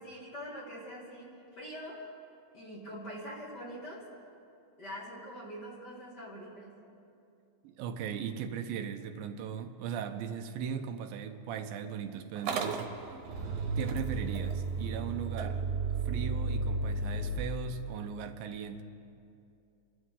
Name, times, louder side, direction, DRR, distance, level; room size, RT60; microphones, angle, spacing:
voice 1, 0.0-2.1 2.5-4.1 4.8-6.8 13.3-13.6, equal, 30° left, -5 dB, 2.6 m, -44 dB
voice 2, 7.6-13.1 13.8-15.6 16.1-18.8, right 7 dB, 80° right, 7 dB, 2.5 m, -38 dB
Motor vehicle (road) / Engine starting, 12.4-17.4, right 4 dB, 65° right, 2.5 m, -33 dB
29.0 x 12.5 x 3.7 m, 2.6 s
omnidirectional pair, 4.1 m